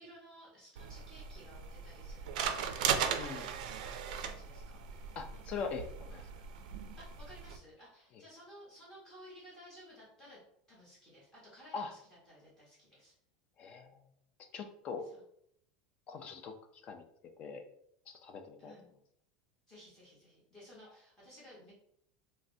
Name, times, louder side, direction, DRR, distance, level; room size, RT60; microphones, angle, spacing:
voice 1, 0.0-3.2 4.1-5.6 7.0-10.4 10.7-13.1 15.1-15.2 18.6-18.9 19.7-21.7, equal, 15° left, -7 dB, 1.0 m, -56 dB
sound 1, 0.8-7.6, right 7 dB, 80° right, 0.3 m, -38 dB
voice 2, 3.2-3.5 5.2-5.8 6.1-6.3 11.7-11.9 13.6-14.0 14.5-15.1 16.1-16.5 16.8-17.0 17.4-17.6 18.1-18.7, left 5 dB, 30° left, 6 dB, 0.3 m, -41 dB
3.2 x 2.0 x 2.6 m, 0.71 s
supercardioid pair, 160°, 4 cm